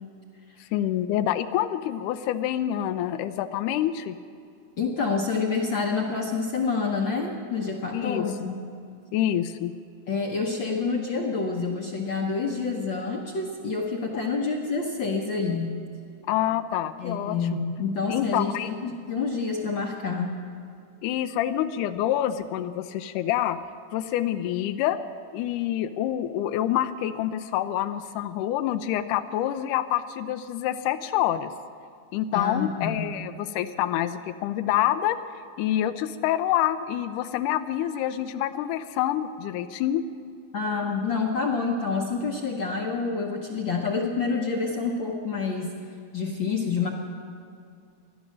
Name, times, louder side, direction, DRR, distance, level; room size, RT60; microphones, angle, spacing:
voice 1, 0.6-4.2 7.9-8.3 9.1-9.7 14.1-14.3 16.3-17.4 18.1-18.7 21.0-23.6 23.9-25.0 25.3-31.5 32.1-35.2 35.6-40.1, left 12 dB, 90° left, 10 dB, 2.1 m, -27 dB
voice 2, 4.8-8.6 10.1-15.8 17.0-20.4 32.3-33.1 40.5-45.8 46.1-46.9, left 4 dB, 65° left, 1 dB, 1.2 m, -28 dB
18.5 x 12.0 x 6.4 m, 2.4 s
omnidirectional pair, 3.6 m